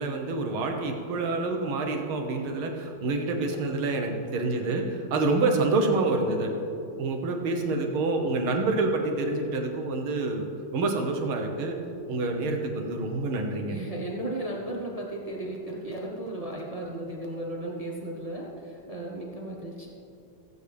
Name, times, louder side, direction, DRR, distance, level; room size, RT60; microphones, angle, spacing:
voice 1, 0.0-6.5 7.0-10.4 10.7-11.8 12.1-13.8, right 3 dB, 85° right, 3 dB, 2.0 m, -27 dB
voice 2, 13.7-19.9, right 1 dB, 30° right, -2 dB, 0.7 m, -35 dB
16.0 x 8.3 x 3.5 m, 2.6 s
omnidirectional pair, 2.2 m